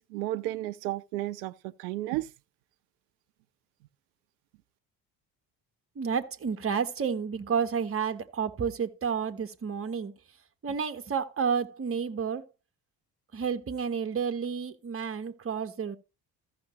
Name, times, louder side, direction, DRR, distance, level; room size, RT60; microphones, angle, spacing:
voice 1, 0.0-1.5 1.8-2.3, right 16 dB, 70° right, 0.7 m, -32 dB
voice 2, 6.0-10.1 10.6-12.4 13.3-16.0, right 6 dB, 25° right, 1.1 m, -30 dB
14.5 x 6.1 x 3.0 m
hypercardioid pair, 55°, 49 cm